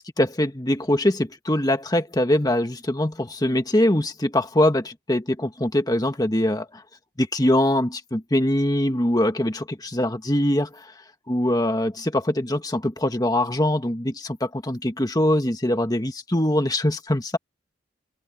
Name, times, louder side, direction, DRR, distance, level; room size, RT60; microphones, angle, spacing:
voice 1, 0.2-6.8 7.2-10.9 11.3-17.4, left 1 dB, 20° left, 1.5 m, -23 dB
open air
head